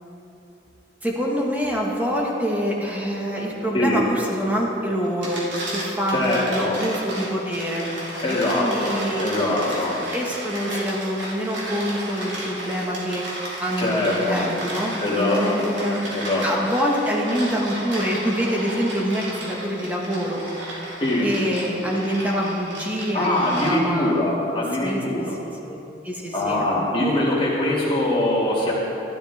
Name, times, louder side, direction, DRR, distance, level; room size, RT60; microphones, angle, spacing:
voice 1, 1.0-7.9 8.3-9.6 10.1-13.2 13.6-16.0 16.4-20.4 21.2-24.2 24.8-25.3 25.7-26.7, equal, 10° right, -2 dB, 1.5 m, -26 dB
sound 1, 5.0-24.1, right 1 dB, 85° right, 2.7 m, -34 dB
voice 2, 6.1-6.8 8.2-10.0 13.8-14.4 15.0-15.7 16.1-16.5 21.0-21.3 21.8-21.9 23.1-25.4 26.3-28.7, left 1 dB, 30° left, -5 dB, 2.3 m, -23 dB
12.5 x 12.0 x 3.6 m, 2.9 s
head